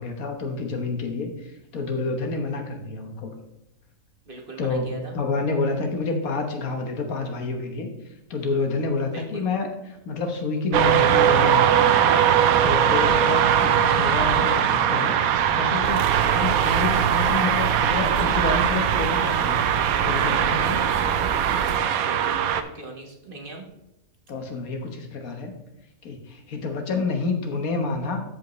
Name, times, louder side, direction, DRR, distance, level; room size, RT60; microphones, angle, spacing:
voice 1, 0.0-3.3 4.6-7.9 8.3-12.3 12.6-15.1 15.5-19.7 20.0-20.8 24.3-25.5 26.0-28.2, left 3 dB, 80° left, 4 dB, 1.6 m, -28 dB
voice 2, 4.3-5.1 9.1-9.5 22.0-23.6, right 2 dB, 40° right, 1 dB, 1.2 m, -40 dB
sound 1, 10.7-22.6, right 9 dB, 85° right, 1.1 m, -21 dB
sound 2, 15.8-21.8, right 6 dB, 60° right, 0.6 m, -30 dB
13.0 x 5.2 x 3.1 m, 0.90 s
omnidirectional pair, 1.5 m